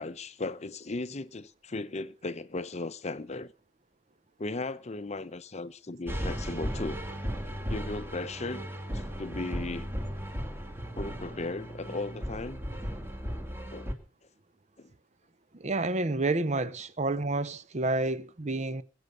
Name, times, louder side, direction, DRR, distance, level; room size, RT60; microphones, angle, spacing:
voice 1, 0.0-3.5 4.4-7.0 7.7-8.7 8.9-9.9 11.0-12.6 13.7-13.9 14.8-14.9, left 2 dB, 35° left, 0.8 m, -36 dB
sound 1, 6.1-13.9, equal, 10° right, 2.0 m, -36 dB
voice 2, 15.6-18.8, right 2 dB, 35° right, 0.7 m, -29 dB
21.5 x 8.1 x 6.5 m
head